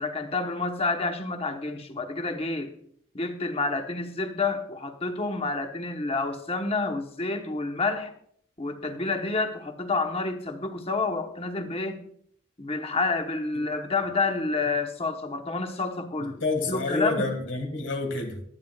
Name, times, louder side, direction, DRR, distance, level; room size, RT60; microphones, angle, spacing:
voice 1, 0.0-2.7 3.1-8.1 8.6-12.0 12.6-16.4 16.7-17.3, left 3 dB, 30° left, 1.1 m, -29 dB
voice 2, 16.4-18.4, left 3 dB, 60° left, 2.0 m, -28 dB
22.5 x 9.3 x 2.4 m
head